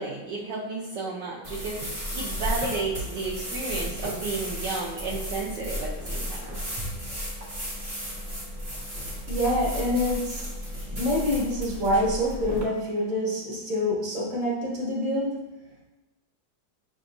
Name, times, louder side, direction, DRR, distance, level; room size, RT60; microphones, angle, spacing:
voice 1, 0.0-6.8, right 3 dB, 70° right, -5 dB, 1.3 m, -33 dB
sound 1, 1.4-12.6, equal, 30° right, 0.8 m, -34 dB
voice 2, 9.3-10.5 10.8-15.3, left 1 dB, 45° right, -4 dB, 1.5 m, -26 dB
5.6 x 3.5 x 2.6 m, 1.1 s
omnidirectional pair, 2.0 m